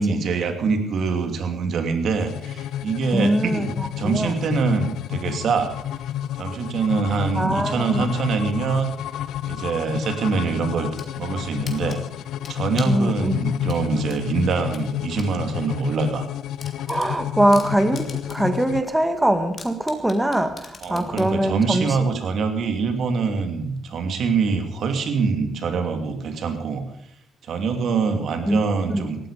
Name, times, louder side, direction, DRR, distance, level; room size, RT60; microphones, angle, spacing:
voice 1, 0.0-5.7 6.4-8.9 9.4-10.9 11.2-12.0 12.5-16.3 20.8-26.8 27.5-29.2, right 5 dB, 65° right, 6 dB, 2.9 m, -24 dB
sound 1, 2.1-18.8, left 11 dB, 85° left, 0.6 m, -30 dB
voice 2, 3.1-4.3 7.4-8.1 12.9-13.4 16.9-21.9 28.5-28.6 28.9-29.0, right 1 dB, 10° right, 7 dB, 2.0 m, -22 dB
sound 2, 10.7-11.1 11.7-13.0 13.7-15.3 15.7-15.8 16.2-16.3 16.6-18.6 18.9-19.0 19.6-21.3, left 5 dB, 45° left, 3.1 m, -41 dB
18.0 x 14.5 x 5.1 m, 0.75 s
cardioid pair, 90°, 0 cm